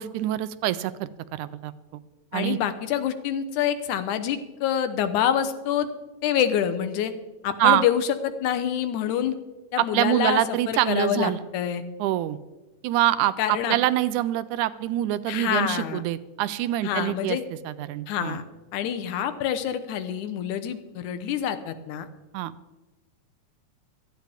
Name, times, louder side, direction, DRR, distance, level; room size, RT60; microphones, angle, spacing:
voice 1, 0.0-2.0 2.3-2.6 7.6-7.9 9.8-11.4 12.0-12.4 12.8-17.4 17.7-18.4 22.3-22.5, right 13 dB, 90° right, 15 dB, 2.0 m, -25 dB
voice 2, 2.3-5.9 6.2-7.1 7.4-9.3 9.7-10.4 10.7-11.8 13.4-13.8 15.3-16.0 16.8-17.4 18.1-18.4 18.7-22.1, left 9 dB, 80° left, 10 dB, 2.4 m, -26 dB
16.5 x 14.0 x 3.6 m, 1.1 s
omnidirectional pair, 3.4 m